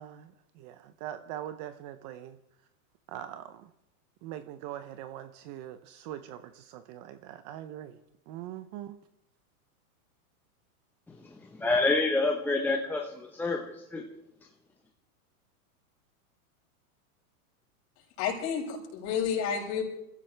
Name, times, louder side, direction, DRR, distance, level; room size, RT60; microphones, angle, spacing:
voice 1, 0.0-2.4 3.1-3.7 4.2-8.0 8.3-9.0, right 11 dB, 30° right, 12 dB, 0.6 m, -42 dB
voice 2, 11.5-14.0, left 3 dB, 5° left, 1 dB, 0.9 m, -27 dB
voice 3, 18.2-19.8, left 7 dB, 40° left, -1 dB, 6.6 m, -30 dB
26.0 x 15.0 x 3.3 m, 0.88 s
supercardioid pair, 150°, 45 cm